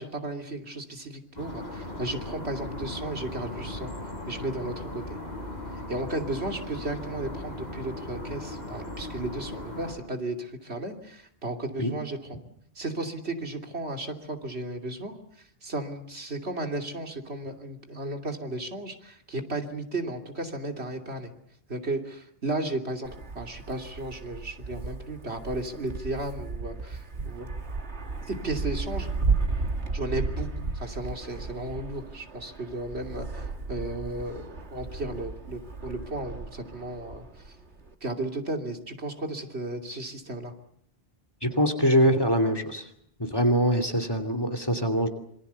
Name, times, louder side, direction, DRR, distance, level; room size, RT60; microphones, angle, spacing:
voice 1, 0.0-3.9 4.3-5.2 5.9-12.4 12.7-15.2 15.6-21.3 21.7-27.5 28.3-29.1 29.9-37.5 38.0-40.5, right 2 dB, 70° right, 4 dB, 3.1 m, -34 dB
sound 1, 1.4-9.9, left 1 dB, 40° left, 7.5 m, -38 dB
Wind, 23.0-37.9, right 4 dB, 90° right, 2.3 m, -34 dB
voice 2, 41.4-42.9 43.2-45.1, equal, 20° left, 9 dB, 2.7 m, -23 dB
27.0 x 24.5 x 7.0 m, 0.68 s
omnidirectional pair, 1.1 m